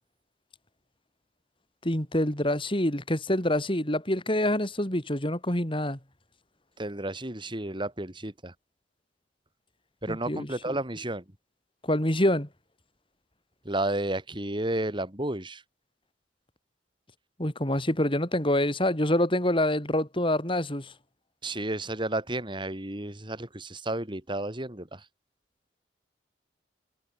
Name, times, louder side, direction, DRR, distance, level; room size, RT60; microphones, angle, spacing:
voice 1, 1.8-6.0 10.1-10.5 11.8-12.5 17.4-20.9, left 1 dB, 30° left, 5.0 m, -26 dB
voice 2, 6.8-8.5 10.0-11.2 13.6-15.6 21.4-25.0, right 1 dB, 25° right, 3.1 m, -32 dB
head